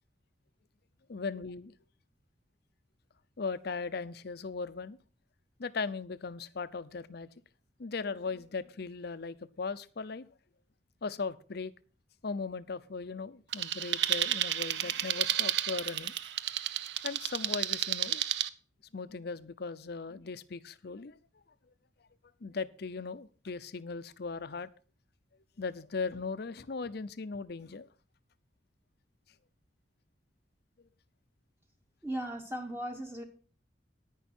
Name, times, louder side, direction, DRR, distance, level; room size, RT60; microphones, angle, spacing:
voice 1, 1.1-1.8 3.4-5.0 5.6-7.3 7.8-10.3 11.0-11.7 12.2-16.1 17.0-18.2 18.9-21.2 22.4-24.7 25.6-27.9, left 4 dB, 60° left, 15 dB, 0.6 m, -38 dB
sound 1, 13.5-18.5, right 12 dB, 70° right, 0.6 m, -32 dB
voice 2, 32.0-33.2, right 1 dB, 15° right, 2 dB, 1.2 m, -37 dB
10.5 x 9.9 x 4.3 m, 0.38 s
head